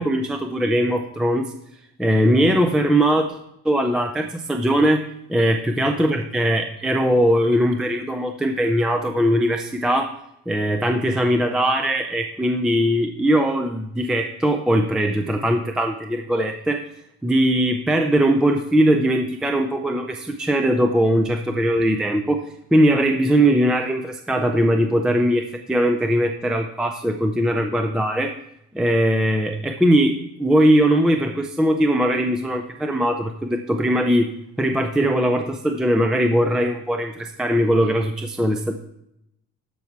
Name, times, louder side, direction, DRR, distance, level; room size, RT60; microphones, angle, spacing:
voice 1, 0.0-1.5 2.0-3.3 3.6-10.1 10.5-16.8 17.2-28.4 28.7-30.1 30.4-34.3 34.6-38.7, equal, ahead, 4 dB, 0.3 m, -20 dB
13.0 x 5.5 x 4.6 m, 0.79 s
cardioid pair, 165°, 30 cm